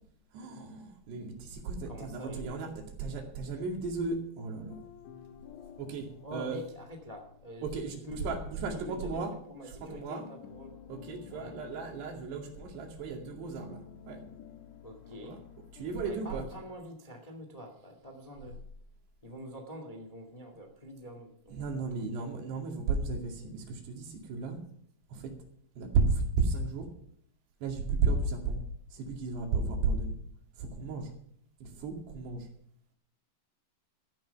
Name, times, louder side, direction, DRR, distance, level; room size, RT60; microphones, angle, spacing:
voice 1, 0.3-4.8 5.8-6.6 7.6-9.3 9.6-10.3 10.9-14.3 15.2-15.4 15.7-16.5 21.5-24.6 25.1-25.3 25.8-26.9 27.6-30.2 30.5-31.1 31.6-32.5, right 4 dB, 70° right, 2 dB, 4.4 m, -34 dB
voice 2, 1.8-2.6 6.2-8.4 8.7-9.2 9.5-10.7 11.3-11.6 14.8-15.4 16.0-18.6 19.2-21.6 22.0-22.3, equal, 25° left, 3 dB, 0.8 m, -45 dB
sound 1, 4.7-9.9 10.2-16.5, left 8 dB, 90° left, 3.1 m, -52 dB
14.5 x 10.5 x 5.9 m, 0.64 s
omnidirectional pair, 5.1 m